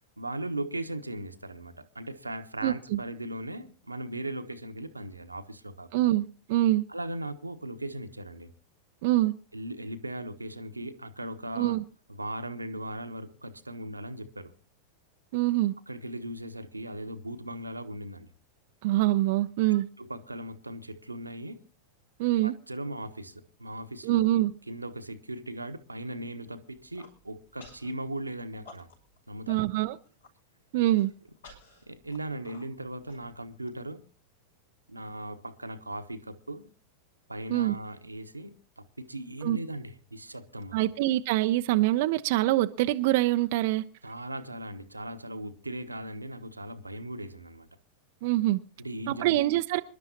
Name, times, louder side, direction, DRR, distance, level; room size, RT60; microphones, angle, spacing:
voice 1, 0.2-6.1 6.9-8.5 9.5-11.7 12.1-14.5 15.9-18.3 20.0-21.6 22.4-24.3 24.7-28.9 29.3-29.6 30.7-30.9 31.9-34.0 34.9-36.7 37.3-40.8 44.0-47.7 48.8-49.4, right 1 dB, 85° right, 1.2 m, -38 dB
voice 2, 2.6-3.0 5.9-6.8 9.0-9.3 11.6-11.8 15.3-15.7 18.8-19.9 22.2-22.5 24.0-24.5 29.5-30.0 30.7-31.1 37.5-37.7 39.4-39.6 40.7-43.8 48.2-48.6 49.1-49.8, right 16 dB, 50° right, 0.6 m, -25 dB
Human voice, 26.8-27.1 27.6-27.9 28.3-29.2 29.5-29.6 30.0-30.3 30.8-33.7, left 3 dB, 65° left, 6.1 m, -52 dB
27.0 x 11.5 x 2.9 m
figure-of-eight pair, 90°, 0 cm